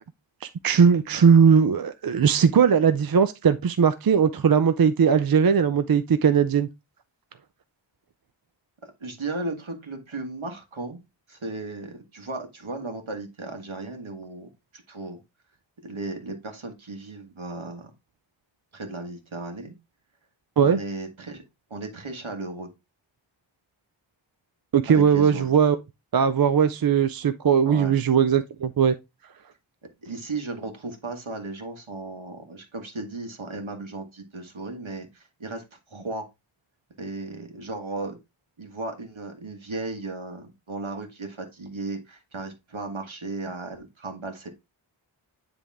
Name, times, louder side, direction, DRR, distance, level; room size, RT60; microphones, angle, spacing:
voice 1, 0.4-6.7 20.6-20.8 24.7-25.8 26.1-28.9, right 7 dB, 50° right, 0.5 m, -19 dB
voice 2, 8.8-11.0 11.3-14.5 14.9-15.2 15.8-17.9 18.7-19.7 20.6-21.4 21.7-22.7 24.9-25.4 27.6-28.0 30.0-36.2 37.0-38.2 38.6-44.5, right 3 dB, 75° right, 1.7 m, -35 dB
9.9 x 3.5 x 3.5 m
wide cardioid pair, 55°, 48 cm